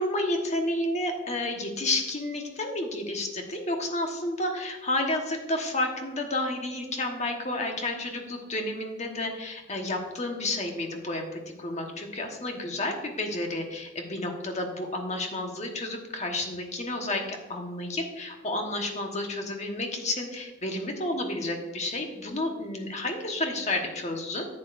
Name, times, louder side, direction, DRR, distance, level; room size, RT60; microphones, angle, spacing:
voice 1, 0.0-24.5, left 1 dB, 35° left, 3 dB, 1.2 m, -31 dB
10.5 x 8.8 x 2.6 m, 1.1 s
head